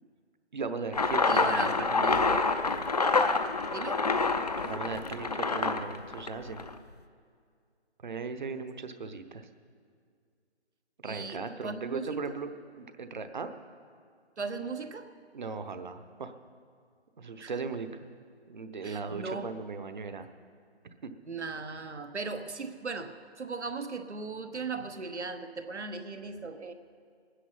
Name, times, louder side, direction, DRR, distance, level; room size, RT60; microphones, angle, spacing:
voice 1, 0.5-2.2 4.6-6.7 8.0-9.5 11.0-13.5 15.3-16.3 17.2-18.0 18.5-20.3 21.0-21.1, right 4 dB, 45° right, 9 dB, 0.9 m, -38 dB
sound 1, 0.9-6.8, left 3 dB, 35° left, 0.5 m, -27 dB
voice 2, 1.3-2.3 3.7-4.1 11.0-12.4 14.4-15.1 17.4-17.5 18.8-19.5 21.3-26.7, right 4 dB, 85° right, 8 dB, 1.2 m, -38 dB
20.0 x 10.0 x 5.6 m, 2.2 s
figure-of-eight pair, 160°, 33 cm